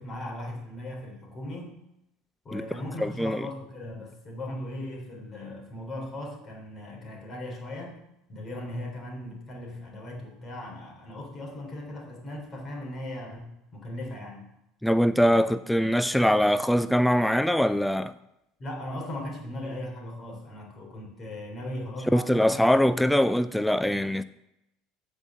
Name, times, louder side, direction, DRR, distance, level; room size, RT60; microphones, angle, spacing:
voice 1, 0.0-1.8 2.4-8.0 8.3-14.5 15.3-15.4 18.6-22.6 22.9-23.1, left 1 dB, 30° left, 3.6 m, -38 dB
voice 2, 3.0-3.4 14.8-18.1 22.1-24.2, equal, ahead, 0.4 m, -23 dB
8.2 x 5.2 x 7.3 m
supercardioid pair, 110°, 0 cm